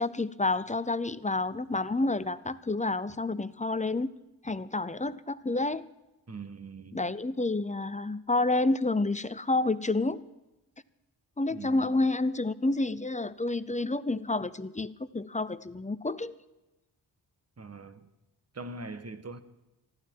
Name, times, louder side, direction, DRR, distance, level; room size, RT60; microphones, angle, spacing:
voice 1, 0.0-4.1 4.4-5.9 6.9-10.2 11.4-16.3, left 2 dB, 15° left, 15 dB, 0.6 m, -29 dB
voice 2, 6.3-7.0 11.5-11.9 17.6-18.1 18.5-19.4, right 3 dB, 35° right, 11 dB, 1.4 m, -42 dB
20.0 x 14.5 x 4.6 m, 1.0 s
cardioid pair, 70°, 45 cm